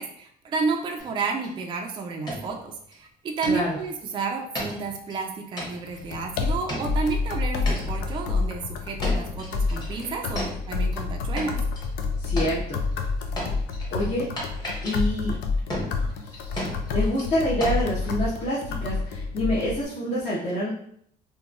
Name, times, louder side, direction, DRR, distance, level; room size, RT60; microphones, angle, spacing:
voice 1, 0.0-11.6, right 4 dB, 30° right, 2 dB, 0.3 m, -31 dB
sound 1, 1.0-1.6 1.9-2.0 2.3-2.9 3.4-3.9 4.6-5.2 5.6-6.1 6.7-7.3 7.7-8.2 9.0-11.0 11.4-12.0 12.4-18.6, equal, 25° left, 1.0 m, -35 dB
voice 2, 3.4-3.8 12.2-12.8 13.9-14.3 14.8-15.4 16.0-20.7, equal, 40° left, -7 dB, 0.7 m, -27 dB
sound 2, 5.9-19.9, left 4 dB, 75° left, 0.4 m, -28 dB
2.8 x 2.2 x 2.4 m, 0.66 s
cardioid pair, 110°, 17 cm